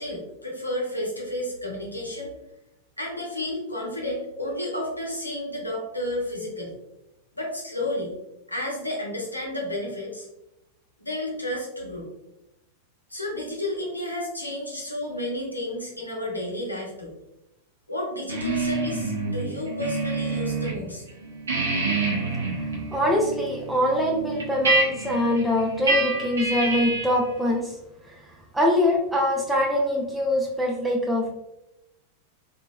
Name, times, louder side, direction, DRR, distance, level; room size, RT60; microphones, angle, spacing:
voice 1, 0.0-2.3 3.0-6.8 7.3-8.1 8.5-10.3 11.0-12.1 13.1-17.1 17.9-21.0, left 1 dB, 85° left, -2 dB, 0.7 m, -31 dB
sound 1, 18.3-20.8 21.1-27.2, right 3 dB, 70° right, 0.6 m, -27 dB
voice 2, 22.9-27.7 28.1-28.2 28.5-31.3, left 1 dB, 5° right, -2 dB, 0.4 m, -23 dB
2.8 x 2.4 x 2.3 m, 0.89 s
figure-of-eight pair, 90°, 0 cm